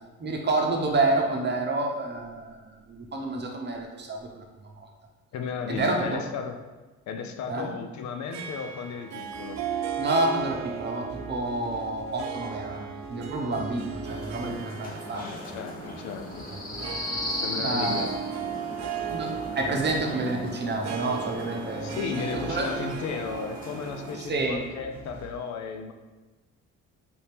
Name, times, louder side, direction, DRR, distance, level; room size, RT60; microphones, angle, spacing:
voice 1, 0.2-4.4 4.8-4.9 5.7-6.2 7.5-7.7 10.0-15.3 17.3-18.1 19.1-22.7 24.2-24.6, right 2 dB, 35° right, 1 dB, 0.8 m, -29 dB
voice 2, 5.3-6.6 7.1-9.6 15.1-16.5 17.4-18.1 21.8-25.9, left 5 dB, 65° left, 6 dB, 0.5 m, -34 dB
Harp, 8.3-25.1, right 7 dB, 60° right, 0.4 m, -37 dB
sound 1, 9.3-10.1 10.4-12.7 13.0-14.6 14.9-20.0 21.6-23.9 24.2-25.4, right 1 dB, 10° left, 1.4 m, -47 dB
sound 2, 14.0-24.1, left 1 dB, 30° left, 0.8 m, -37 dB
4.3 x 2.8 x 3.4 m, 1.2 s
cardioid pair, 90°, 30 cm